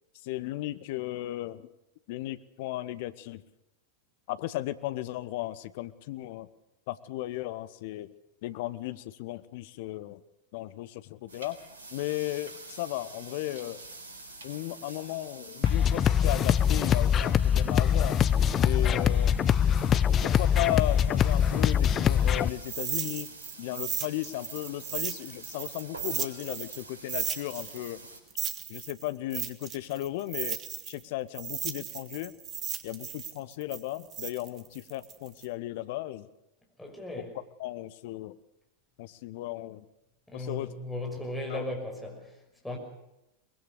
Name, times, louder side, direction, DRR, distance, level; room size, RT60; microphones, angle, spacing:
voice 1, 0.2-1.7 2.1-3.4 4.3-6.5 6.9-8.1 8.4-10.2 10.5-11.6 11.9-13.8 14.4-18.2 18.6-19.3 20.2-23.3 23.6-28.0 28.7-30.6 30.9-32.3 32.8-36.3 37.6-38.4 39.0-39.8 40.3-40.7 41.5-41.7, left 16 dB, 50° left, 14 dB, 1.0 m, -35 dB
sound 1, 11.3-28.2, right 2 dB, 65° right, 4.1 m, -48 dB
sound 2, 15.6-22.5, left 8 dB, 25° left, 0.7 m, -23 dB
sound 3, 22.6-26.8 27.1-31.0 31.3-35.4, right 9 dB, 30° right, 1.6 m, -35 dB
voice 2, 36.8-37.3 40.3-42.2 42.6-42.8, left 1 dB, 5° left, 0 dB, 6.0 m, -36 dB
23.0 x 20.5 x 6.6 m, 0.91 s
figure-of-eight pair, 90°, 0 cm